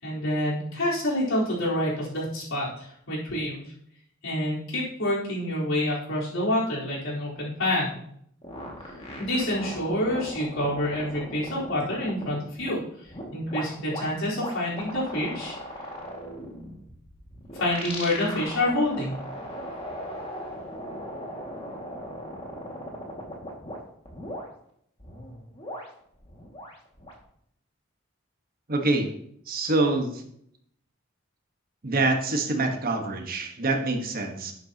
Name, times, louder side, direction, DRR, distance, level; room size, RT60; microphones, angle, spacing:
voice 1, 0.0-3.7 4.2-8.0 9.2-15.6 17.5-19.2, left 1 dB, 80° left, -6 dB, 4.0 m, -27 dB
sound 1, 8.4-12.7 13.1-23.8 24.1-24.4 25.0-27.2, equal, 30° left, 2.1 m, -38 dB
voice 2, 28.7-29.1 29.5-30.2 31.8-34.5, right 2 dB, 45° right, 4 dB, 1.4 m, -25 dB
11.0 x 9.2 x 2.9 m, 0.69 s
head